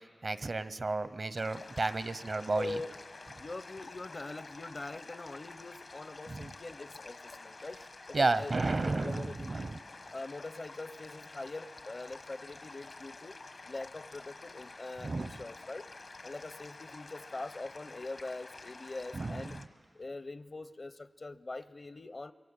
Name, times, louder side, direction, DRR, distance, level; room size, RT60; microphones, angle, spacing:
voice 1, 0.2-2.8 6.3-6.5 8.1-9.7 15.0-15.3 19.1-19.5, right 3 dB, 65° right, 14 dB, 0.8 m, -32 dB
sound 1, 1.3-19.7, left 3 dB, 70° left, 1.2 m, -49 dB
voice 2, 2.5-3.0 3.4-7.8 8.1-9.7 10.1-13.4 13.7-15.9 16.2-19.6 19.9-22.3, left 2 dB, 55° left, 14 dB, 0.7 m, -43 dB
25.0 x 22.5 x 8.8 m, 2.2 s
cardioid pair, 45°, 0 cm